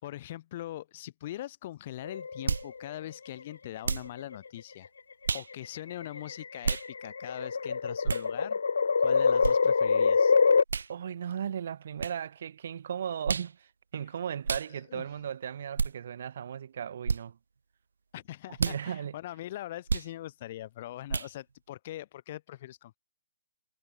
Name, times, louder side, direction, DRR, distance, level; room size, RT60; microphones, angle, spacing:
voice 1, 0.0-4.9 5.3-8.6 9.0-10.3 14.9-15.0 18.1-23.0, left 14 dB, 30° left, 4.4 m, -42 dB
sound 1, 2.0-2.9 4.1-4.5 5.4-10.6, left 5 dB, 85° left, 0.8 m, -25 dB
sound 2, 2.5-2.7 3.8-4.1 5.2-5.5 6.6-6.9 8.0-8.3 9.4-9.6 10.7-10.9 12.0-12.2 13.2-13.5 14.4-14.7 15.8-15.9 17.0-17.2 18.6-18.8 19.9-20.1 21.1-21.3, right 5 dB, 90° right, 4.6 m, -30 dB
voice 2, 10.9-17.4 18.5-19.2, right 8 dB, 50° right, 2.8 m, -36 dB
hypercardioid pair, 170°, 0 cm